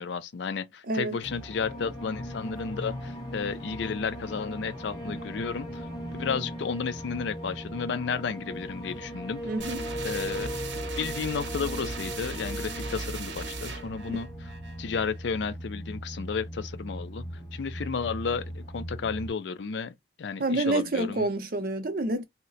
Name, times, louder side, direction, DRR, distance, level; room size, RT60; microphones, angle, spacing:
voice 1, 0.0-9.4 10.0-10.6 11.0-14.3 14.8-17.2 17.5-21.3, left 5 dB, 65° left, 0.4 m, -32 dB
voice 2, 0.9-1.2 9.4-9.8 14.1-14.2 20.4-22.2, right 2 dB, 45° right, 0.6 m, -28 dB
sound 1, 1.2-19.3, equal, 25° left, 1.0 m, -38 dB
sound 2, 9.6-15.2, right 3 dB, 65° right, 0.9 m, -38 dB
2.8 x 2.1 x 3.9 m
head